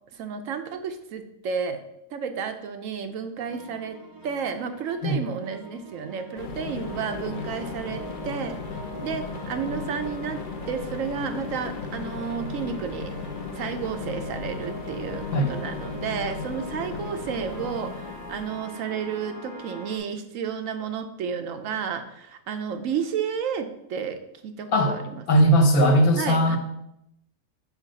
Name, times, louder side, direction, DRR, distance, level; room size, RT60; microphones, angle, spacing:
voice 1, 0.1-1.8 2.1-4.0 4.2-8.6 9.0-13.1 13.5-24.2 24.4-25.2 26.2-26.6, right 6 dB, 70° right, 7 dB, 0.9 m, -32 dB
sound 1, 3.4-20.0, left 1 dB, 20° right, 0.8 m, -42 dB
sound 2, 6.4-18.7, left 5 dB, 55° left, 0.5 m, -36 dB
voice 2, 25.3-26.6, equal, 80° left, 2 dB, 1.5 m, -19 dB
4.9 x 4.5 x 5.3 m, 0.81 s
omnidirectional pair, 1.5 m